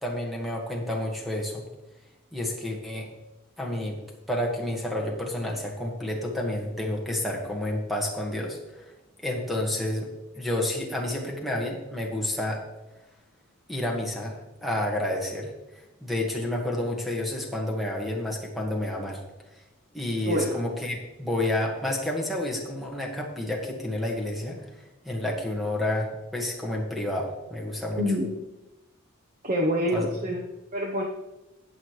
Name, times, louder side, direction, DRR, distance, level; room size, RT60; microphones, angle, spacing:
voice 1, 0.0-1.6 2.3-3.1 3.6-4.0 4.3-8.9 9.2-10.1 10.3-12.6 13.7-19.2 19.5-19.6 19.9-28.0 29.9-30.1, left 1 dB, ahead, -1 dB, 1.7 m, -30 dB
voice 2, 20.2-20.6 28.0-28.3 29.4-30.4 30.7-31.0, equal, 40° right, 0 dB, 1.0 m, -26 dB
18.5 x 6.3 x 3.2 m, 1.0 s
head